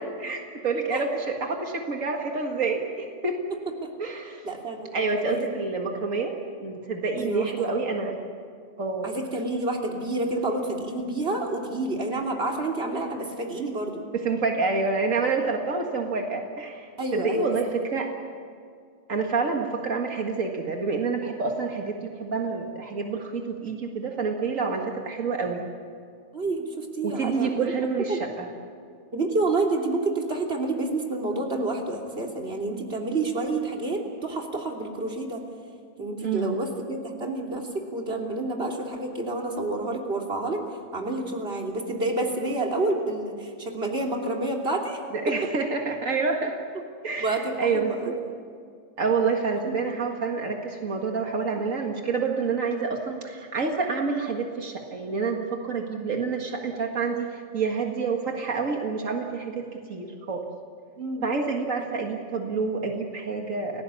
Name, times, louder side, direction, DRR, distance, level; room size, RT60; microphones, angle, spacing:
voice 1, 0.2-3.4 4.0-4.5 4.9-6.3 6.6-8.2 8.8-9.1 14.1-18.1 19.1-25.7 27.0-28.5 36.2-36.6 45.1-46.6 47.0-48.2 49.0-60.4 61.2-63.8, right 4 dB, 90° right, 2 dB, 2.2 m, -28 dB
voice 2, 4.4-5.5 7.2-7.7 9.0-14.0 17.0-17.6 26.3-27.6 28.1-28.2 29.1-35.4 36.0-40.6 40.9-45.0 47.2-48.1 49.6-49.7 61.0-61.3, right 2 dB, 50° right, 0 dB, 3.3 m, -29 dB
29.5 x 18.0 x 8.4 m, 2.1 s
omnidirectional pair, 1.3 m